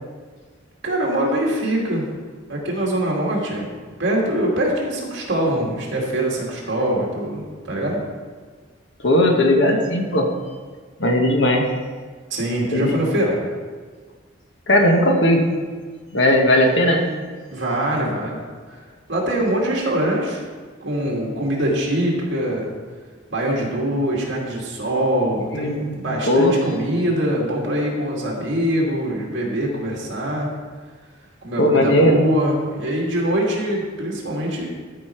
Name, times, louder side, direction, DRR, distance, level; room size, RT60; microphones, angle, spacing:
voice 1, 0.8-2.0 2.5-8.0 12.3-13.4 17.5-18.4 18.7-18.8 19.1-20.4 20.8-22.7 23.3-30.5 31.4-34.6, right 1 dB, 60° right, -2 dB, 2.3 m, -23 dB
voice 2, 9.0-10.3 11.0-11.7 12.7-12.9 14.7-15.4 16.1-17.1 25.5-26.6 31.6-32.2, left 1 dB, 65° left, 2 dB, 1.3 m, -17 dB
13.0 x 5.4 x 4.5 m, 1.5 s
head